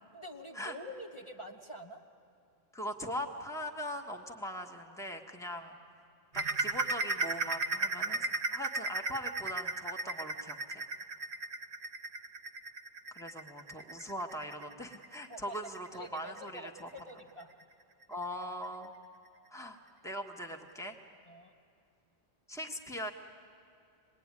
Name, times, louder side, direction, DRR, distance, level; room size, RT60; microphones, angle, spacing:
voice 1, 0.1-2.0 15.3-15.6 15.9-17.6 21.3-21.5, equal, 30° left, -1 dB, 1.2 m, -47 dB
voice 2, 2.7-5.8 6.3-8.3 8.5-10.8 13.1-16.9 18.1-18.9 19.5-21.0 22.5-23.1, equal, 5° left, 4 dB, 1.4 m, -41 dB
sound 1, 6.3-17.6 18.0-18.2 18.6-18.7 19.3-19.4, right 3 dB, 60° right, 1.1 m, -36 dB
26.0 x 20.5 x 9.7 m, 2.6 s
omnidirectional pair, 1.1 m